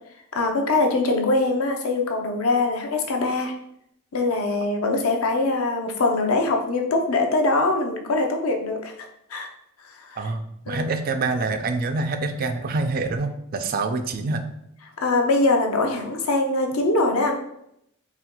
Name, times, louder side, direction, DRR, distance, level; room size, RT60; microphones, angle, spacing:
voice 1, 0.3-3.5 4.1-9.5 9.8-10.3 10.7-10.9 15.0-17.4, left 2 dB, 75° left, 3 dB, 0.6 m, -23 dB
voice 2, 10.2-14.4, right 3 dB, 45° right, 8 dB, 0.4 m, -26 dB
4.2 x 2.3 x 3.6 m, 0.78 s
head